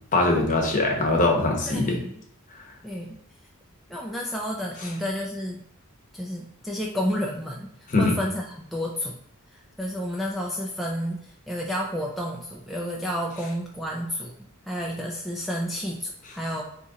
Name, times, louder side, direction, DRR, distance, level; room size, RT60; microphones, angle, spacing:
voice 1, 0.1-2.0 2.5-2.6 7.9-8.1, left 2 dB, 35° left, 0 dB, 0.9 m, -22 dB
voice 2, 1.7-2.1 2.8-3.2 3.9-5.6 6.1-7.7 8.0-9.2 9.5-14.3 14.7-16.6, equal, ahead, -3 dB, 0.3 m, -30 dB
4.1 x 2.9 x 3.6 m, 0.71 s
head